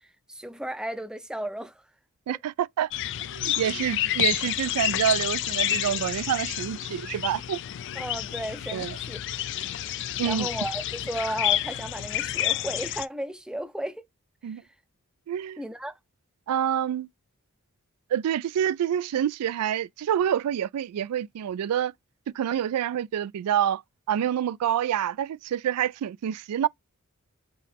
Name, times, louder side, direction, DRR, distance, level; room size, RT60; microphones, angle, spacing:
voice 1, 0.3-1.7 8.0-9.2 9.5-9.6 10.3-14.0 15.6-15.9, right 1 dB, 5° right, 0.5 m, -34 dB
voice 2, 2.3-2.9 3.3-7.6 8.7-9.0 10.2-10.5 14.4-14.6 15.3-15.6 16.5-17.1 18.1-21.9 22.3-23.8 24.1-26.7, right 9 dB, 80° right, 0.3 m, -27 dB
sound 1, 2.9-13.0, left 13 dB, 55° left, 0.3 m, -29 dB
4.5 x 3.1 x 3.3 m
head